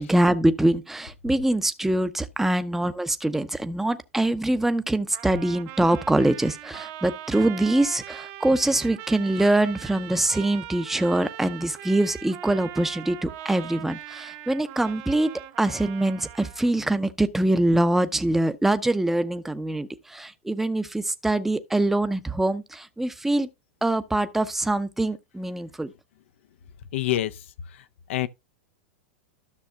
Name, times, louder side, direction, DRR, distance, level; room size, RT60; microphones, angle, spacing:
voice 1, 0.0-15.3 15.6-23.5 23.8-25.9, right 1 dB, 5° right, 0.6 m, -24 dB
Trumpet, 5.1-16.7, right 14 dB, 50° right, 1.0 m, -41 dB
voice 2, 26.9-27.3 28.1-28.3, left 14 dB, 70° left, 0.6 m, -25 dB
13.0 x 6.3 x 2.2 m
hypercardioid pair, 115°, 7 cm